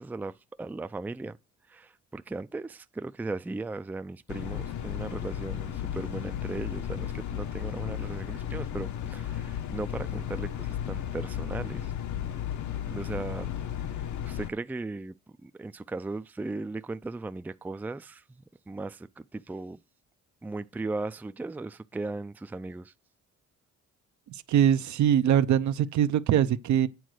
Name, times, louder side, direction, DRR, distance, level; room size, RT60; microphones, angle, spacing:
voice 1, 0.0-1.4 1.7-11.9 12.9-13.5 13.9-19.8 20.4-22.9, right 3 dB, 5° right, 0.4 m, -37 dB
sound 1, 4.3-14.5, left 10 dB, 70° left, 1.1 m, -34 dB
voice 2, 24.5-26.9, right 10 dB, 70° right, 0.8 m, -22 dB
9.5 x 3.9 x 6.3 m
cardioid pair, 90°, 30 cm